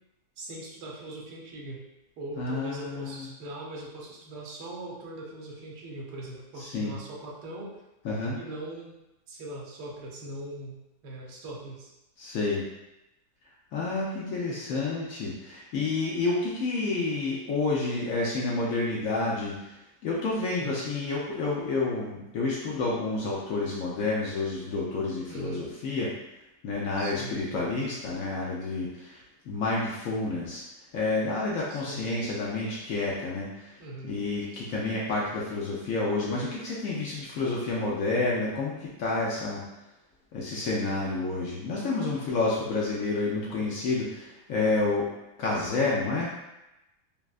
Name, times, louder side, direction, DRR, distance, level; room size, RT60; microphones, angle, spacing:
voice 1, 0.4-1.8 2.2-7.8 8.4-9.0 9.3-11.9 20.5-20.9 25.3-25.7 27.0-27.4 31.7-32.1 33.8-34.2, right 1 dB, 85° right, -2 dB, 1.2 m, -40 dB
voice 2, 2.4-3.3 6.7-6.9 8.0-8.4 12.2-12.6 13.7-19.5 20.0-26.1 26.6-30.6 30.9-33.8 34.0-39.6 40.3-45.1 45.4-46.3, left 3 dB, 65° left, -5 dB, 0.9 m, -29 dB
3.4 x 2.0 x 2.4 m, 0.93 s
omnidirectional pair, 1.8 m